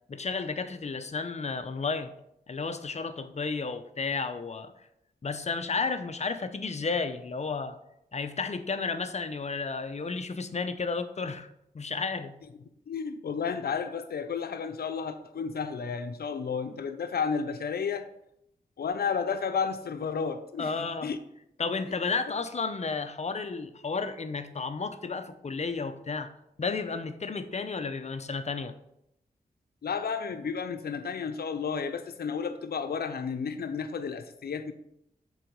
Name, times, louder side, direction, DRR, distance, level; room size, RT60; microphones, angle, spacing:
voice 1, 0.1-2.1 2.5-4.7 5.2-7.8 8.1-11.5 11.7-12.3 20.6-21.1 21.6-26.3 26.6-28.7, left 4 dB, 45° left, 10 dB, 0.7 m, -32 dB
voice 2, 12.9-18.1 18.8-21.2 29.8-34.7, left 6 dB, 75° left, 9 dB, 0.7 m, -32 dB
7.4 x 4.0 x 5.3 m, 0.78 s
cardioid pair, 75°, 16 cm